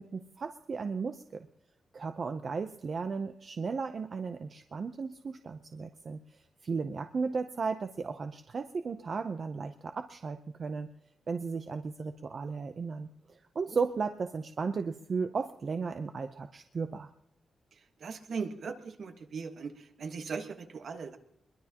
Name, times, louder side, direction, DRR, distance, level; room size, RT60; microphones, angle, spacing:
voice 1, 0.0-1.5 1.9-10.9 11.3-17.1, right 5 dB, 45° right, 7 dB, 0.6 m, -35 dB
voice 2, 18.0-21.2, right 5 dB, 65° right, 6 dB, 1.4 m, -39 dB
22.5 x 22.0 x 2.9 m, 0.82 s
wide cardioid pair, 150°, 0 cm